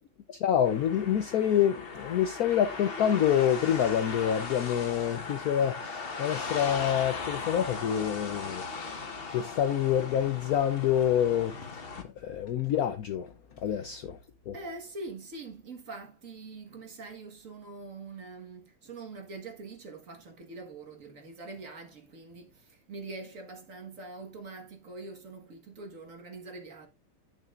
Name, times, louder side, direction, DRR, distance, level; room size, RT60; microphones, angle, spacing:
voice 1, 0.3-9.0 9.3-14.2 14.5-14.6, left 10 dB, 90° left, 0.8 m, -27 dB
sound 1, 0.6-12.0, left 4 dB, 35° left, 1.0 m, -38 dB
voice 2, 14.5-26.9, right 3 dB, 40° right, 1.7 m, -44 dB
10.5 x 6.2 x 2.4 m
omnidirectional pair, 2.3 m